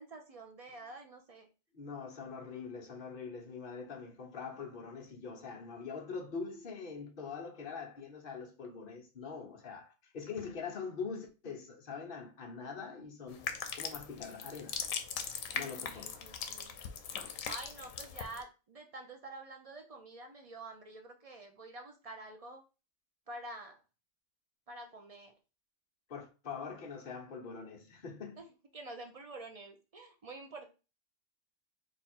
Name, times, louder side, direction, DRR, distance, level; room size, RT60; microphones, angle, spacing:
voice 1, 0.0-1.5 15.8-16.8 17.3-22.6 23.3-23.8 24.7-25.3 28.4-28.5 28.7-30.7, right 2 dB, 55° right, 0.4 m, -48 dB
voice 2, 1.7-13.5 13.7-14.9 15.5-16.5 26.1-28.4, left 5 dB, 45° left, 1.0 m, -43 dB
sound 1, 13.3-18.4, left 7 dB, 85° left, 1.0 m, -40 dB
3.3 x 2.4 x 4.3 m
omnidirectional pair, 1.3 m